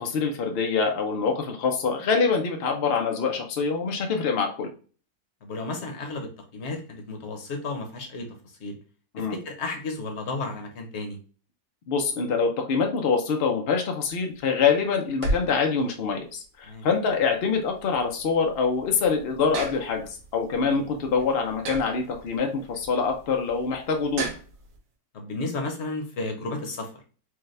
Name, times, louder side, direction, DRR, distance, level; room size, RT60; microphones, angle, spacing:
voice 1, 0.0-4.7 9.1-9.4 11.9-24.3, left 5 dB, 70° left, 3 dB, 0.5 m, -25 dB
voice 2, 5.4-8.8 9.2-11.2 16.7-16.9 20.7-20.8 25.1-27.0, left 3 dB, 50° left, 3 dB, 0.9 m, -33 dB
sound 1, 14.0-24.8, right 2 dB, 70° right, 1.5 m, -37 dB
5.0 x 2.2 x 3.2 m, 0.38 s
omnidirectional pair, 1.9 m